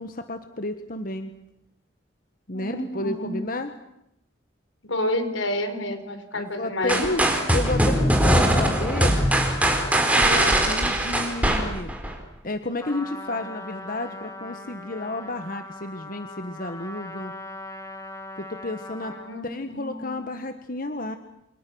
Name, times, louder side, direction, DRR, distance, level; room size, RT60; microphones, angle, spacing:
voice 1, 0.0-1.3 2.5-3.7 6.3-7.1 7.5-9.2 10.0-11.9 12.4-17.3 18.4-19.1 19.4-21.2, left 2 dB, 45° left, 8 dB, 1.4 m, -32 dB
voice 2, 2.5-3.3 4.8-7.5 19.1-20.2, left 1 dB, 80° left, 8 dB, 4.6 m, -29 dB
sound 1, 6.9-12.1, right 1 dB, 10° right, 4.5 m, -21 dB
Trumpet, 12.8-19.4, left 2 dB, 15° left, 3.2 m, -40 dB
29.0 x 29.0 x 6.4 m, 0.80 s
head